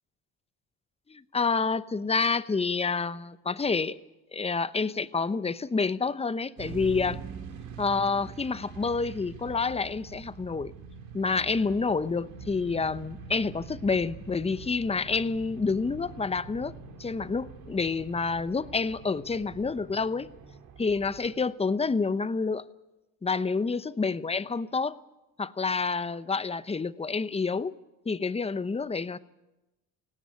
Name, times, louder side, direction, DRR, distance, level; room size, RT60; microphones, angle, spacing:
voice 1, 1.1-4.0 4.3-7.2 7.8-10.7 11.1-20.3 20.8-22.6 23.2-25.0 25.4-27.7 28.0-29.2, left 4 dB, 15° left, 0.9 m, -28 dB
sound 1, 6.6-21.3, right 5 dB, 70° right, 4.9 m, -44 dB
18.5 x 16.5 x 9.7 m
supercardioid pair, 80°, 37 cm